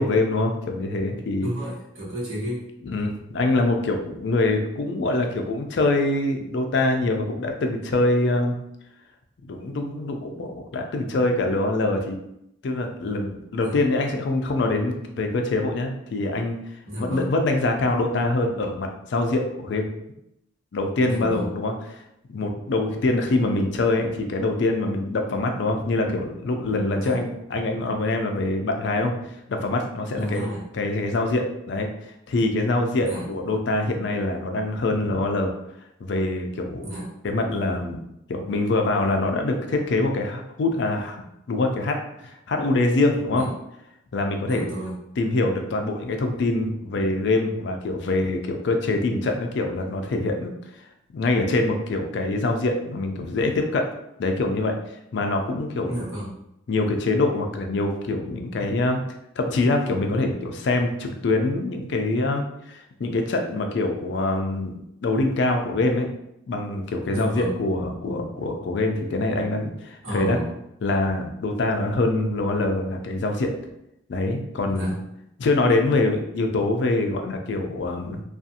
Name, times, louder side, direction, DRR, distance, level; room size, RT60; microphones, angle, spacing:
voice 1, 0.0-1.5 2.8-8.6 9.4-12.2 12.6-16.6 17.0-19.9 20.7-22.0 22.3-29.1 29.5-30.5 30.7-35.5 36.0-36.9 37.2-38.0 38.3-41.2 41.5-43.5 44.1-44.7 45.2-50.5 51.1-53.9 54.2-54.8 55.1-56.0 56.7-59.0 59.4-66.1 66.5-70.4 70.8-73.5 74.1-74.9 75.4-78.2, left 2 dB, 55° left, 4 dB, 0.3 m, -24 dB
voice 2, 1.4-2.7 13.6-13.8 16.8-17.3 21.0-21.5 26.9-27.2 30.1-30.7 33.0-33.3 36.8-37.1 43.3-43.5 44.5-45.0 55.9-56.3 67.0-67.6 70.0-70.5 74.7-74.9, equal, 85° right, -6 dB, 1.1 m, -32 dB
2.5 x 2.3 x 2.7 m, 0.81 s
head